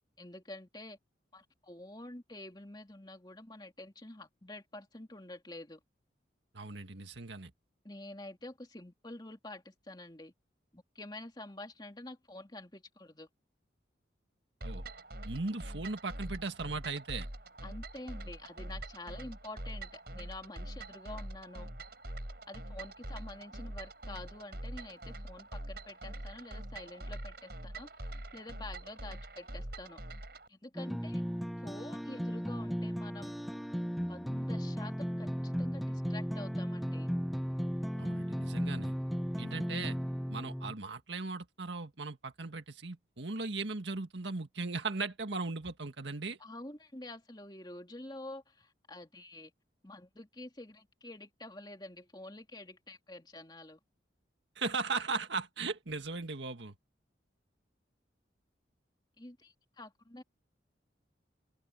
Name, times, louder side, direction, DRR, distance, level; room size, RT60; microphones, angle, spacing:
voice 1, 0.2-1.0 1.3-5.8 7.8-10.3 10.7-13.3 17.6-21.7 22.5-30.0 30.5-31.2 31.6-33.3 34.1-37.1 46.4-49.5 49.8-53.8 59.2-60.2, left 2 dB, 25° left, 2.7 m, -48 dB
voice 2, 6.5-7.5 14.6-14.8 15.2-17.3 38.0-38.9 39.4-40.0 40.3-46.4 54.5-56.7, right 3 dB, 75° right, 1.8 m, -38 dB
sound 1, 14.6-30.5, right 1 dB, 55° right, 5.2 m, -44 dB
sound 2, 30.7-40.7, equal, ahead, 0.8 m, -35 dB
open air
head